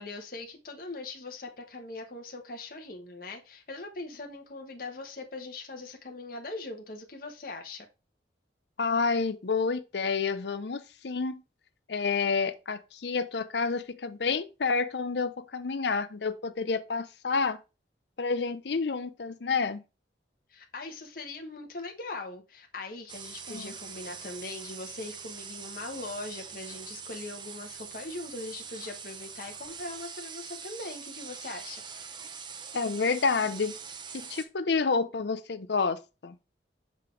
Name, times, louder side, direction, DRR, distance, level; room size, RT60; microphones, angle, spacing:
voice 1, 0.0-7.9 20.5-31.8, left 2 dB, 50° left, 1.1 m, -41 dB
voice 2, 8.8-11.4 11.9-17.6 18.2-19.8 23.5-23.7 32.7-33.8 34.1-36.3, left 4 dB, 70° left, 0.6 m, -29 dB
sound 1, 23.1-34.5, right 6 dB, 25° right, 0.7 m, -43 dB
5.8 x 5.3 x 3.2 m
head